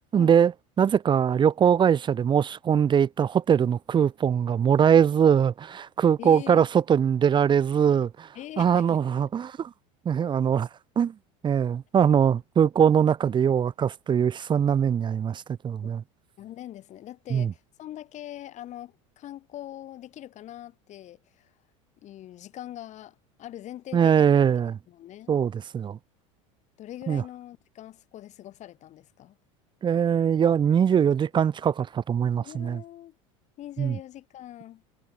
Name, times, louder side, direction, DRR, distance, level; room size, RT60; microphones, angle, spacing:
voice 1, 0.1-0.5 0.8-8.3 8.6-9.7 10.0-10.7 11.0-11.1 11.4-16.0 17.3-17.5 23.9-24.8 25.3-26.0 27.1-27.2 29.8-32.8 33.8-34.0, right 8 dB, 30° right, 1.2 m, -22 dB
voice 2, 6.2-6.7 8.3-9.0 10.2-10.3 15.8-15.9 16.4-21.5 22.0-24.5 24.9-25.4 26.8-29.4 30.9-31.0 32.4-33.2 33.6-34.8, left 13 dB, 45° left, 3.8 m, -42 dB
supercardioid pair, 105°, 17 cm